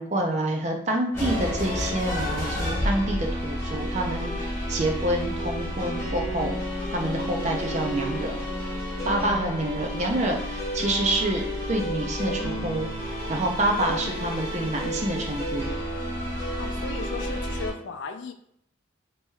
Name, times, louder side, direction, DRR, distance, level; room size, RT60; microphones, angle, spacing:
voice 1, 0.0-6.5 6.9-8.4 9.1-15.7, right 1 dB, 35° right, 2 dB, 0.5 m, -27 dB
sound 1, 1.1-17.7, equal, 15° left, 1.1 m, -30 dB
voice 2, 16.6-18.3, left 4 dB, 70° left, 7 dB, 0.4 m, -36 dB
4.5 x 2.9 x 2.3 m, 0.69 s
head